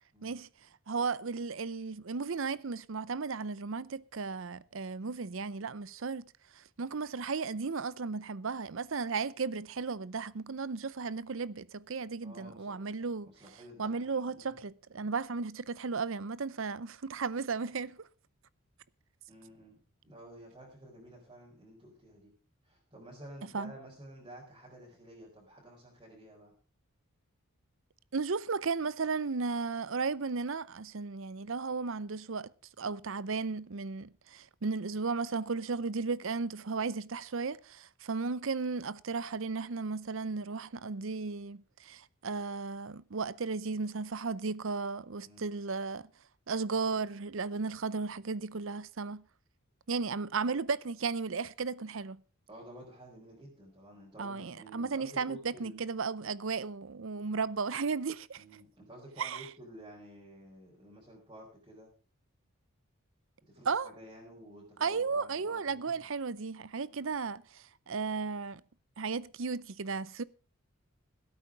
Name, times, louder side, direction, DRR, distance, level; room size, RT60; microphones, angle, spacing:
voice 1, 0.9-13.3 13.8-18.1 23.5-23.7 28.1-32.5 32.8-46.1 46.5-49.2 49.9-52.2 54.2-58.4 59.2-59.5 63.7-63.9 64.8-68.6 69.0-70.2, right 4 dB, 65° right, 0.6 m, -35 dB
voice 2, 12.2-12.8 13.2-14.5 19.3-22.3 22.6-26.5 45.2-45.5 52.5-55.8 58.4-61.9 63.4-66.1 66.8-67.1, right 1 dB, 20° right, 4.4 m, -52 dB
16.5 x 8.8 x 5.1 m
head